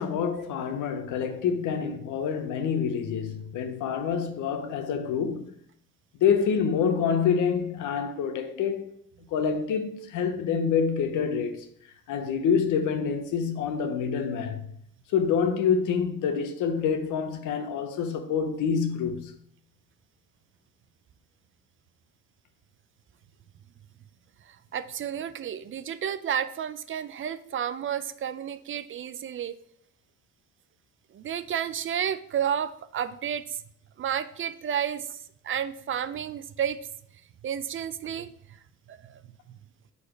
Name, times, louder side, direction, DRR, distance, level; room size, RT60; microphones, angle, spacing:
voice 1, 0.0-5.5 6.2-8.9 9.3-11.7 12.1-14.7 15.1-19.4, left 6 dB, 85° left, 0.8 m, -27 dB
voice 2, 24.5-29.6 31.1-33.6 34.0-36.8 37.4-38.3 38.9-39.2 39.5-39.6, right 9 dB, 45° right, 0.4 m, -31 dB
4.9 x 4.1 x 4.9 m
cardioid pair, 90°, 30 cm